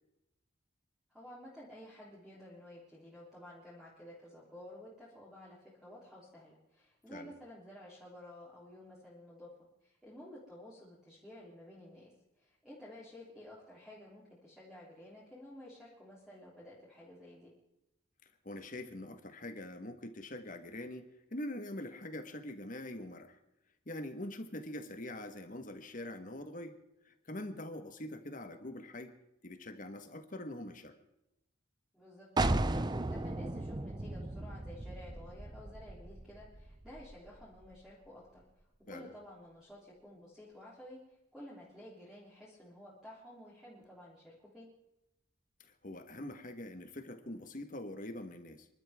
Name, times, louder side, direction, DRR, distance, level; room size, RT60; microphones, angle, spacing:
voice 1, 1.1-9.5 9.8-12.1 12.4-17.5 31.9-38.4 38.9-44.7, left 1 dB, 5° right, -8 dB, 3.5 m, -52 dB
voice 2, 18.4-23.4 23.9-26.8 27.0-29.1 29.4-31.0 38.9-39.1 45.6-48.7, left 1 dB, 40° left, 7 dB, 1.5 m, -44 dB
sound 1, 32.4-37.9, right 2 dB, 20° right, 0.6 m, -36 dB
28.5 x 12.0 x 3.7 m, 0.88 s
head